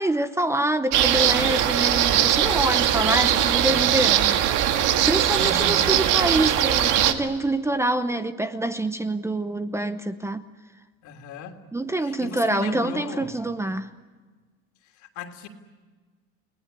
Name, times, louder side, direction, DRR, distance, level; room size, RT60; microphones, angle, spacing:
voice 1, 0.0-4.4 5.0-10.5 11.7-13.9, right 1 dB, 10° right, 10 dB, 0.8 m, -26 dB
sound 1, 0.9-7.1, right 10 dB, 75° right, 2.0 m, -20 dB
voice 2, 2.8-3.3 5.3-5.9 11.0-11.6 12.0-13.3 14.8-15.5, left 5 dB, 70° left, 5 dB, 3.2 m, -37 dB
29.5 x 19.5 x 9.9 m, 1.4 s
cardioid pair, 150°, 31 cm